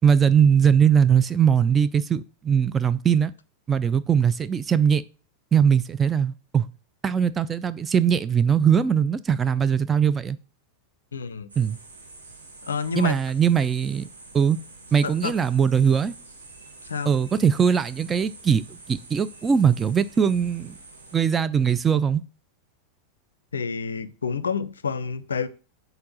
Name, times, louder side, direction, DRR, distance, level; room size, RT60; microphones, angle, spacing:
voice 1, 0.0-3.3 3.7-5.0 5.5-6.7 7.0-10.4 11.6-11.8 13.0-14.1 14.3-14.6 14.9-16.1 17.1-18.6 18.9-20.7 21.1-22.2, right 7 dB, 20° right, 0.3 m, -20 dB
voice 2, 11.1-11.5 12.6-13.2 15.0-15.3 16.8-17.1 23.5-25.5, left 5 dB, 70° left, 0.4 m, -29 dB
sound 1, 11.5-21.2, right 3 dB, 75° right, 1.1 m, -47 dB
4.3 x 3.9 x 5.5 m
figure-of-eight pair, 90°, 0 cm